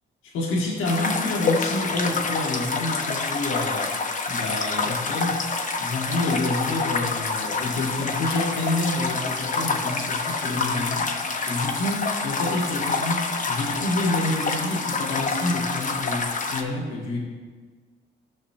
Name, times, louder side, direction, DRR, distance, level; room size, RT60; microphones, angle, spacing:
voice 1, 0.2-4.0 4.3-5.4 5.8-11.1 11.5-17.2, left 2 dB, 90° left, -2 dB, 1.5 m, -28 dB
sound 1, 0.8-16.6, left 4 dB, 40° left, 1.0 m, -27 dB
14.5 x 6.0 x 2.8 m, 1.5 s
cardioid pair, 90°, 20 cm